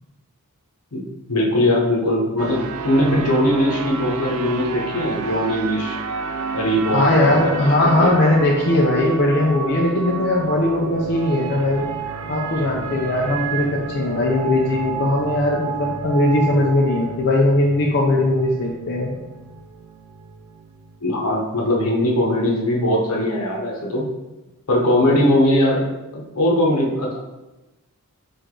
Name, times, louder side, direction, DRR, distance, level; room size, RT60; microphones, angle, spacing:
voice 1, 1.3-6.0 6.5-8.2 21.0-24.1 24.7-25.8 26.1-27.2, left 1 dB, 75° left, -1 dB, 0.9 m, -20 dB
sound 1, 2.4-21.8, right 5 dB, 70° right, 0.4 m, -30 dB
voice 2, 6.9-11.8 12.3-19.1, left 1 dB, 50° left, -2 dB, 0.5 m, -19 dB
4.7 x 2.5 x 3.7 m, 1.1 s
head